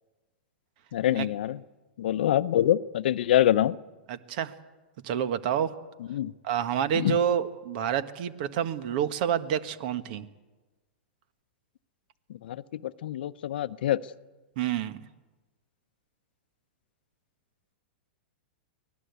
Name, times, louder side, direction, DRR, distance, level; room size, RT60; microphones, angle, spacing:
voice 1, 0.9-1.6 2.0-3.8 6.1-6.3 6.9-7.2 12.4-14.0, left 12 dB, 70° left, 15 dB, 0.8 m, -25 dB
voice 2, 4.1-4.5 5.0-5.7 6.4-10.3 14.6-15.0, right 9 dB, 55° right, 11 dB, 1.5 m, -28 dB
24.5 x 18.0 x 8.2 m, 1.2 s
hypercardioid pair, 120°, 6 cm